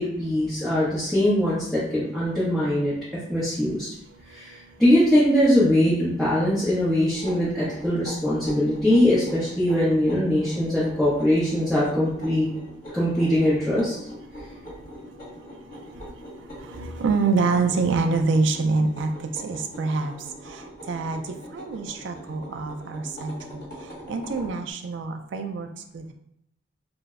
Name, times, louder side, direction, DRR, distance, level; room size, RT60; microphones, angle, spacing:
voice 1, 0.0-2.9 3.3-3.9 4.3-12.5 12.9-14.0, left 1 dB, ahead, -12 dB, 0.6 m, -22 dB
sound 1, 7.1-24.6, equal, 40° left, 1.1 m, -42 dB
voice 2, 16.6-19.1 19.4-20.1 20.5-20.6 20.9-21.2 21.5-23.6 24.1-25.7 25.9-26.1, right 4 dB, 65° right, 6 dB, 0.3 m, -25 dB
2.0 x 2.0 x 3.5 m, 0.75 s
head